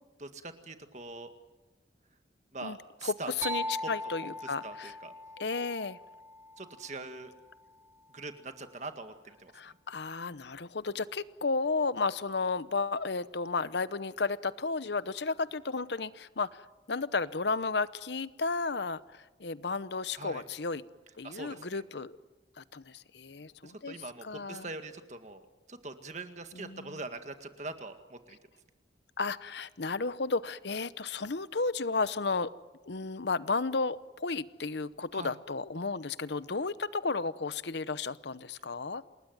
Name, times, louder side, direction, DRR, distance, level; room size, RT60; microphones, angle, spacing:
voice 1, 0.2-1.3 2.5-3.3 4.0-4.1 4.4-5.1 6.6-7.3 8.1-9.8 20.1-20.4 21.2-21.8 23.6-28.4 35.1-35.3, right 3 dB, 40° right, 7 dB, 1.9 m, -43 dB
voice 2, 3.0-4.9 5.4-6.0 9.5-20.8 21.2-22.2 22.6-24.0 24.2-24.7 26.5-27.0 29.2-32.5 32.8-39.0, left 4 dB, 65° left, 16 dB, 0.9 m, -33 dB
sound 1, 3.4-7.1, equal, 15° right, 2.2 m, -39 dB
28.0 x 20.5 x 9.4 m, 1.2 s
head